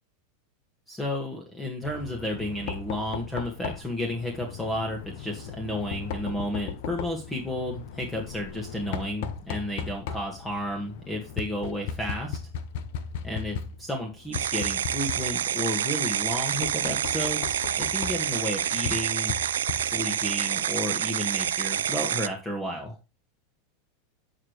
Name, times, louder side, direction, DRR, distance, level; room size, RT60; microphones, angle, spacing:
voice 1, 0.9-12.4 13.2-19.3 19.8-23.0, left 1 dB, 10° left, 2 dB, 1.6 m, -32 dB
Knock, 1.8-20.3, left 7 dB, 65° left, 0.8 m, -38 dB
sound 1, 14.3-22.3, right 9 dB, 85° right, 0.4 m, -28 dB
8.6 x 4.9 x 3.1 m, 0.28 s
hypercardioid pair, 105°, 0 cm